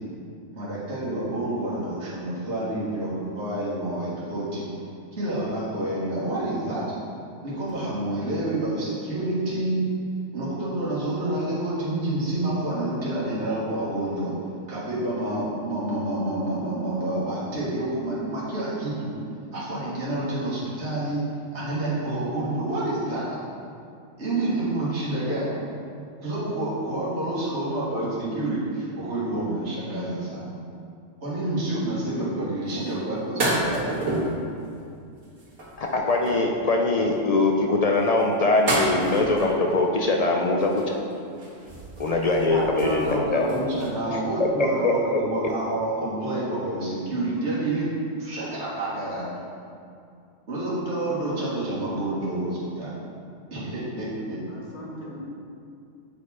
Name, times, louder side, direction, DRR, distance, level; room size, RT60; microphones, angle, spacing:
voice 1, 0.5-4.7 5.1-6.8 7.4-9.8 10.3-14.3 14.7-19.1 19.5-21.2 21.5-23.3 24.2-25.6 26.2-30.5 31.2-33.9 42.5-47.9 48.2-49.5 50.5-52.9 53.5-54.4, right 1 dB, 60° right, -9 dB, 2.0 m, -28 dB
sound 1, 32.8-32.9 33.4-34.4 35.2-36.5 37.9-39.8 40.6-41.1 41.4-43.9, right 1 dB, 90° right, 2.0 m, -29 dB
voice 2, 35.8-41.0 42.0-43.5 44.1-45.5, left 2 dB, 60° left, 1 dB, 0.4 m, -22 dB
voice 3, 54.2-55.3, left 1 dB, 35° left, -4 dB, 1.3 m, -41 dB
7.6 x 4.3 x 4.2 m, 2.5 s
omnidirectional pair, 1.3 m